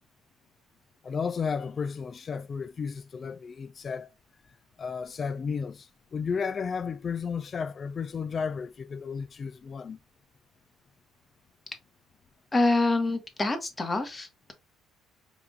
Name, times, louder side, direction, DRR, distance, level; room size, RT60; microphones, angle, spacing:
voice 1, 1.0-4.1 4.8-10.0, left 6 dB, 45° left, 0.4 m, -33 dB
voice 2, 12.5-14.5, left 2 dB, 25° left, 1.5 m, -26 dB
4.9 x 3.5 x 2.5 m
hypercardioid pair, 60°, 0 cm